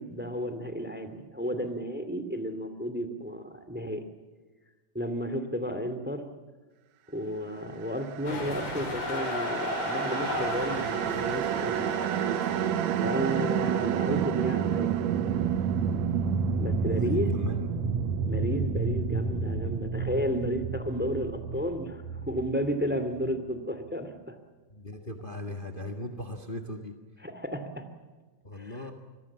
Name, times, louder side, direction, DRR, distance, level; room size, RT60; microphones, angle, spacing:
voice 1, 0.0-4.0 4.9-6.3 7.1-11.9 13.0-15.0 16.6-17.3 18.3-24.3 27.2-27.9 28.5-28.8, equal, 5° right, 9 dB, 1.4 m, -32 dB
sound 1, 8.1-23.3, right 7 dB, 70° right, 1.8 m, -30 dB
sound 2, 8.3-13.4, left 3 dB, 90° left, 6.8 m, -35 dB
voice 2, 16.9-17.9 24.7-26.9 28.4-28.9, left 1 dB, 45° left, 5 dB, 0.6 m, -38 dB
26.5 x 22.0 x 7.3 m, 1.3 s
omnidirectional pair, 4.1 m